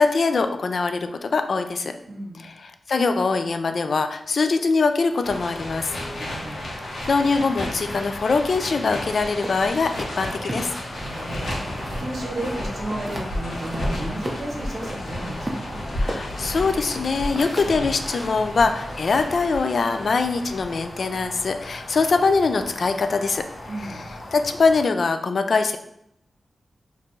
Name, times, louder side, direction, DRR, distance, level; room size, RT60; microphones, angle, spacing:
voice 1, 0.0-1.9 2.9-6.6 7.1-10.7 16.0-23.4 23.9-24.0 24.3-25.8, left 4 dB, 60° left, 8 dB, 0.3 m, -22 dB
voice 2, 2.1-2.5 6.1-6.6 10.9-15.8 23.7-24.1, right 1 dB, 60° right, 1 dB, 0.7 m, -34 dB
sound 1, 5.2-24.8, left 1 dB, 75° left, 1.1 m, -33 dB
sound 2, 9.4-12.1 12.4-13.3 13.6-15.0 15.4-19.2, right 1 dB, 20° right, 0.5 m, -35 dB
4.3 x 2.6 x 3.1 m, 0.77 s
wide cardioid pair, 120°, 0 cm